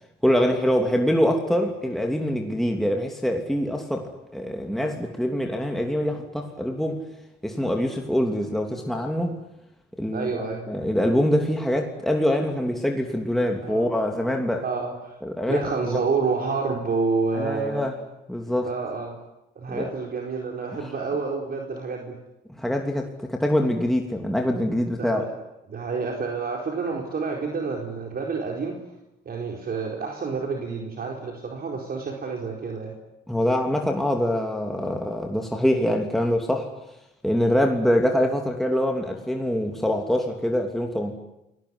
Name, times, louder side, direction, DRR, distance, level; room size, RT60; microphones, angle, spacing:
voice 1, 0.2-7.0 7.4-9.4 10.0-14.6 15.2-16.0 17.3-17.9 18.3-18.7 19.7-19.9 20.8-20.9 22.6-25.2 33.3-36.7 37.2-41.1, equal, ahead, 2 dB, 3.0 m, -24 dB
voice 2, 10.1-10.6 13.6-13.9 14.6-15.1 15.5-17.8 18.6-19.2 19.6-22.1 25.0-25.3 25.7-28.8 29.2-32.9, right 4 dB, 50° right, 1 dB, 4.5 m, -28 dB
28.5 x 19.0 x 9.8 m, 0.92 s
cardioid pair, 90°, 20 cm